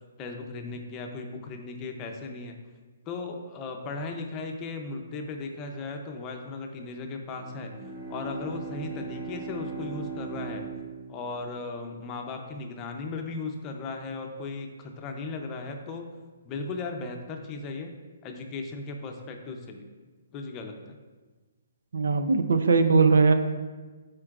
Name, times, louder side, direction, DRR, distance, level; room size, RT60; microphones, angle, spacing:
voice 1, 0.2-2.6 3.1-7.7 8.1-10.6 11.1-16.1 16.4-17.9 18.2-19.8 20.3-21.0, left 3 dB, 20° left, 3 dB, 0.7 m, -36 dB
Bowed string instrument, 7.3-12.1, right 4 dB, 45° right, 1.8 m, -39 dB
voice 2, 21.9-23.3, right 4 dB, 80° right, 8 dB, 0.6 m, -20 dB
13.0 x 4.5 x 2.5 m, 1.3 s
hypercardioid pair, 160°, 0 cm